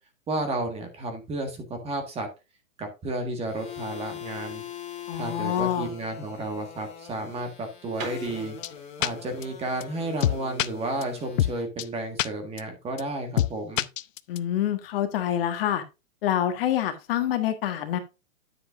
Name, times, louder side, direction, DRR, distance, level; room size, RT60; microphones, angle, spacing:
voice 1, 0.3-2.3 2.8-4.6 5.1-8.6 9.0-13.9, right 2 dB, 15° right, 1.7 m, -32 dB
sound 1, 3.5-11.6, left 9 dB, 15° left, 2.5 m, -41 dB
voice 2, 5.1-5.9 14.3-15.8 16.2-18.0, left 11 dB, 45° left, 1.5 m, -26 dB
sound 2, 7.9-11.7, right 4 dB, 75° right, 4.1 m, -45 dB
sound 3, 8.6-8.7 9.0-9.1 9.4-9.5 9.8-9.9 10.2-10.7 11.0-11.1 11.4-11.5 11.8-11.9 12.2-12.3 12.6-12.7 13.0-13.1 13.4-13.5 13.8-14.4, left 12 dB, 75° left, 0.6 m, -24 dB
10.0 x 7.7 x 2.5 m
hypercardioid pair, 145°, 40 cm